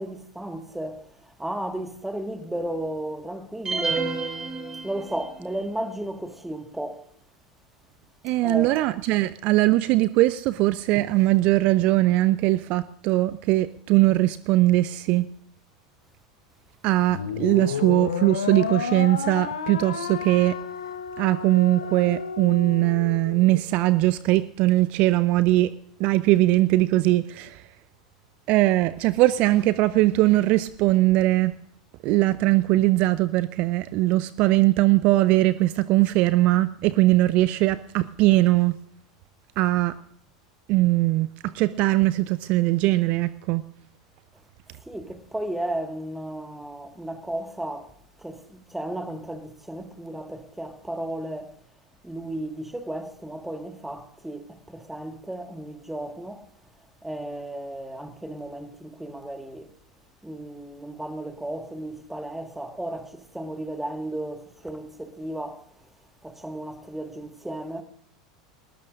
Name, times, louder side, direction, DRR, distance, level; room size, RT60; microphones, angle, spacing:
voice 1, 0.0-4.1 4.8-7.0 8.4-8.8 44.8-47.9 48.2-51.5 52.0-56.4 57.0-59.7 60.2-65.7 66.2-67.8, right 1 dB, 5° right, 1.7 m, -34 dB
sound 1, 3.7-5.5, right 4 dB, 20° right, 6.7 m, -30 dB
voice 2, 8.2-15.3 16.8-20.5 21.2-25.7 26.0-27.6 28.5-31.5 32.0-38.7 39.6-39.9 40.7-41.3 41.5-43.6, right 17 dB, 45° right, 0.5 m, -20 dB
sound 2, 17.1-23.6, left 6 dB, 75° left, 1.3 m, -31 dB
20.5 x 19.0 x 2.5 m
figure-of-eight pair, 80°, 3 cm